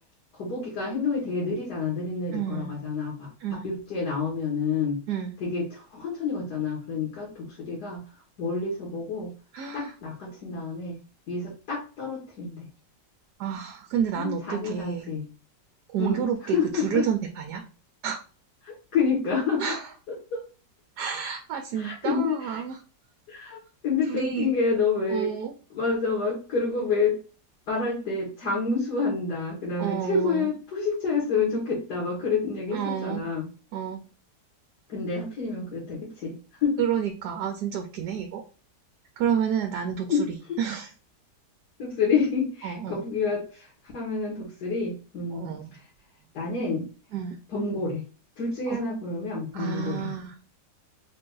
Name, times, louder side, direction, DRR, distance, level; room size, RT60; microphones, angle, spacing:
voice 1, 0.3-3.3 3.6-5.0 5.4-8.0 8.4-9.3 9.7-11.0 11.3-12.7 14.1-15.2 16.0-16.2 16.5-17.1 18.6-19.6 20.1-20.4 21.8-22.6 23.3-25.3 25.7-27.2 27.7-33.5 34.9-36.4 36.6-36.8 40.1-40.6 41.8-43.7 43.9-45.5 46.3-46.9 47.5-48.0 48.4-50.1, left 4 dB, 70° left, -3 dB, 1.9 m, -28 dB
voice 2, 2.3-2.7 3.4-3.6 5.1-5.3 9.5-9.9 13.4-15.1 15.9-17.6 18.0-18.2 19.6-19.9 21.0-22.8 24.1-24.5 25.1-25.5 29.8-30.5 32.7-33.2 33.7-34.0 36.8-38.4 39.2-40.9 42.6-43.0 45.3-45.8 47.1-47.4 48.7-48.8 49.5-50.3, right 8 dB, 70° right, 4 dB, 1.2 m, -30 dB
4.2 x 2.6 x 3.7 m, 0.36 s
omnidirectional pair, 1.9 m